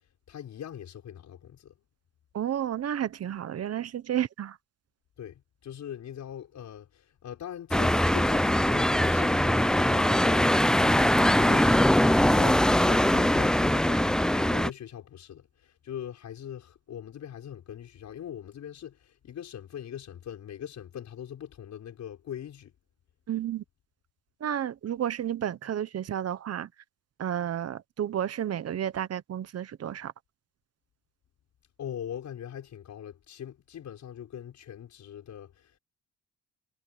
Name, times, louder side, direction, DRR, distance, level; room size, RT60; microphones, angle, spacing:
voice 1, 0.3-1.8 5.2-22.7 31.8-35.8, left 10 dB, 65° left, 6.3 m, -41 dB
voice 2, 2.3-4.6 23.3-23.6 24.4-26.7 27.2-30.1, right 10 dB, 55° right, 1.2 m, -31 dB
sound 1, 7.7-14.7, left 1 dB, ahead, 0.5 m, -22 dB
cardioid pair, 90°, 30 cm